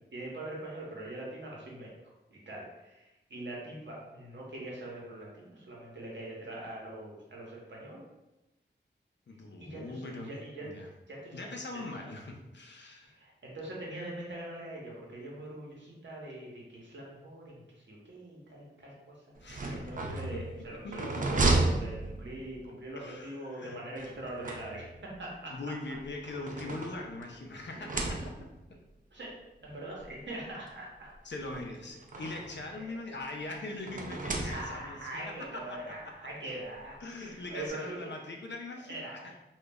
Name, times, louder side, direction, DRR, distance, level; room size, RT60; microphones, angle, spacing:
voice 1, 0.1-1.9 2.3-8.0 9.6-10.7 11.1-11.5 13.0-17.6 17.9-25.5 29.1-29.4 29.6-31.1 32.8-33.0 34.4-38.0 38.9-39.3, right 1 dB, 75° right, -3 dB, 0.8 m, -43 dB
voice 2, 9.3-10.3 10.6-10.9 11.3-13.1 19.4-20.4 20.8-21.1 22.9-23.8 25.5-28.3 28.7-28.8 31.2-35.9 37.0-39.3, left 2 dB, 70° left, 2 dB, 0.5 m, -41 dB
sound 1, 19.3-22.7 24.0-25.1 26.0-27.4 27.7-28.7 29.6-29.7 30.0-30.1 31.3-32.7 33.9-35.0, right 2 dB, 45° right, 0.4 m, -33 dB
2.2 x 2.0 x 3.4 m, 0.99 s
wide cardioid pair, 50°, 19 cm